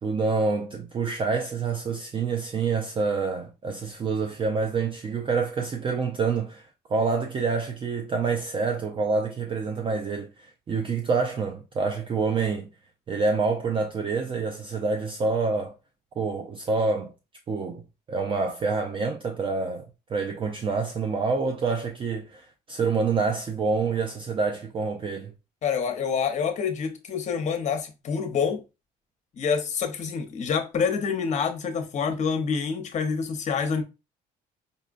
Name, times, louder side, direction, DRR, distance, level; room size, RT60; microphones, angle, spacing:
voice 1, 0.0-12.7 13.1-15.7 16.2-17.1 17.5-17.8 18.1-25.3, right 4 dB, 30° right, 0.4 m, -27 dB
voice 2, 25.6-28.6 29.3-33.8, left 6 dB, 45° left, 0.8 m, -27 dB
5.2 x 2.2 x 2.5 m
cardioid pair, 110°, 17 cm